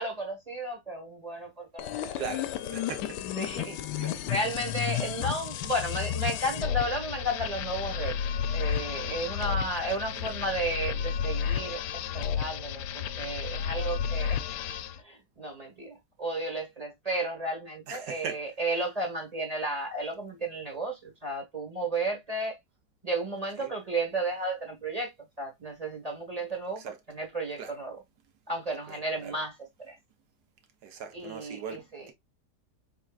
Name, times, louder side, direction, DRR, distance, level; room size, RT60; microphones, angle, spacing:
voice 1, 0.0-2.2 3.3-3.8 4.3-8.2 8.5-14.4 14.7-22.6 23.0-28.0 28.5-29.6 29.9-30.0 31.1-32.1, right 1 dB, 25° right, 1.2 m, -33 dB
sound 1, 1.8-15.0, left 9 dB, 80° left, 1.2 m, -32 dB
voice 2, 2.2-3.2 4.0-4.2 10.2-10.3 17.9-18.4 23.6-23.7 26.8-26.9 27.6-27.7 28.9-29.4 30.8-32.1, right 7 dB, 75° right, 1.3 m, -39 dB
4.4 x 3.7 x 2.3 m
omnidirectional pair, 1.8 m